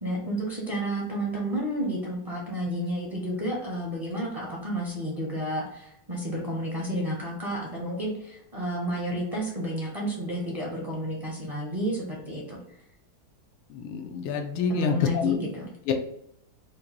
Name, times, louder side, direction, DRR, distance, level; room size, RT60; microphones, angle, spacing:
voice 1, 0.0-12.6 14.7-15.7, right 1 dB, 35° right, -3 dB, 0.6 m, -31 dB
voice 2, 13.7-15.4 15.9-16.0, left 6 dB, 90° left, 4 dB, 1.5 m, -27 dB
5.1 x 2.2 x 2.9 m, 0.78 s
omnidirectional pair, 2.2 m